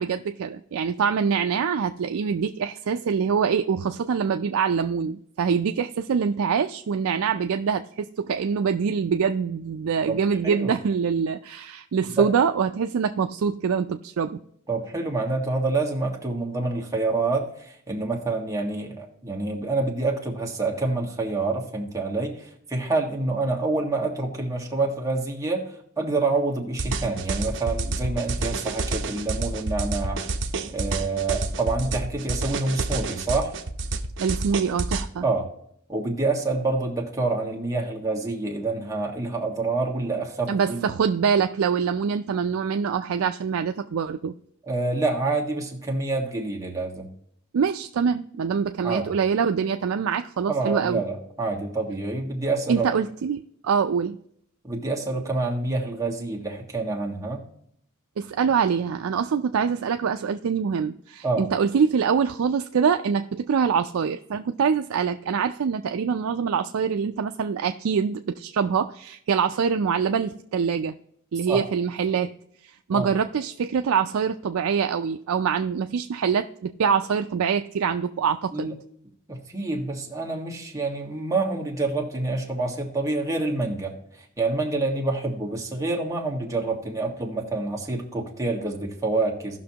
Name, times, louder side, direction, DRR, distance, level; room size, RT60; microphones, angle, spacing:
voice 1, 0.0-14.4 34.2-35.2 40.5-44.3 47.5-51.0 52.7-54.2 58.2-70.9 71.3-72.3 72.6-78.7, right 6 dB, 85° right, 7 dB, 0.4 m, -24 dB
voice 2, 14.7-30.2 30.7-33.5 35.2-35.5 35.9-40.9 44.7-47.1 48.8-49.1 50.5-52.9 54.6-57.4 61.2-61.5 71.5-71.6 72.9-73.1 78.5-78.8 79.3-89.6, right 3 dB, 15° right, -1 dB, 1.6 m, -27 dB
sound 1, 26.8-35.0, right 3 dB, 65° right, 0.8 m, -29 dB
16.5 x 6.0 x 2.9 m, 0.70 s
head